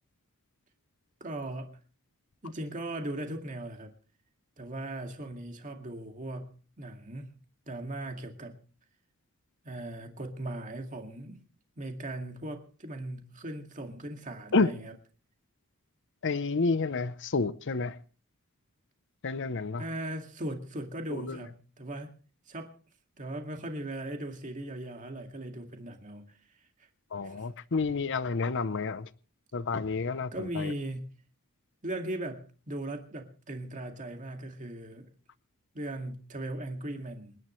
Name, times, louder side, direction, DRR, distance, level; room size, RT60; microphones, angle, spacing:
voice 1, 1.2-1.7 2.4-3.9 4.6-7.3 7.7-8.5 9.6-11.4 11.8-14.9 19.8-22.1 22.5-22.7 23.2-26.3 27.2-27.4 30.3-31.0 31.8-35.1 35.7-37.4, right 1 dB, 35° right, 2.1 m, -38 dB
voice 2, 16.2-18.0 19.2-19.8 21.1-21.4 27.1-29.1 29.5-30.7, left 4 dB, 55° left, 0.7 m, -30 dB
27.5 x 10.5 x 3.2 m
head